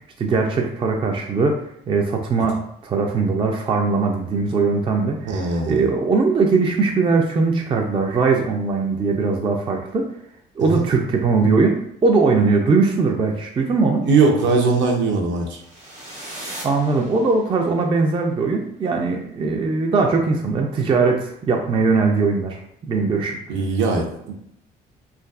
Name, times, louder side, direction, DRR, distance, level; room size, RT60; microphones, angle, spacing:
voice 1, 0.2-10.1 10.6-14.1 16.6-22.6 22.9-23.4, right 4 dB, 25° right, 2 dB, 0.4 m, -20 dB
voice 2, 5.3-5.8 10.6-10.8 14.0-15.6 23.5-24.3, right 4 dB, 65° right, 1 dB, 0.6 m, -20 dB
sound 1, 15.5-17.7, right 1 dB, 80° right, 1.2 m, -38 dB
2.5 x 2.3 x 2.3 m, 0.74 s
supercardioid pair, 60°, 21 cm